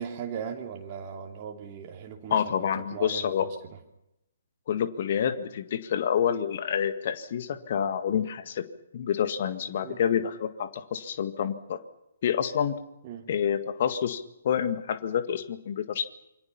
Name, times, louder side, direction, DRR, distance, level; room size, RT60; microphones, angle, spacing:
voice 1, 0.0-3.6 9.8-10.0 13.0-13.3, right 7 dB, 30° right, 1 dB, 2.7 m, -38 dB
voice 2, 2.3-3.5 4.7-8.6 8.9-11.8 12.2-12.8 13.3-16.1, left 8 dB, 45° left, 10 dB, 1.8 m, -28 dB
28.0 x 24.5 x 5.8 m, 0.88 s
figure-of-eight pair, 130°, 0 cm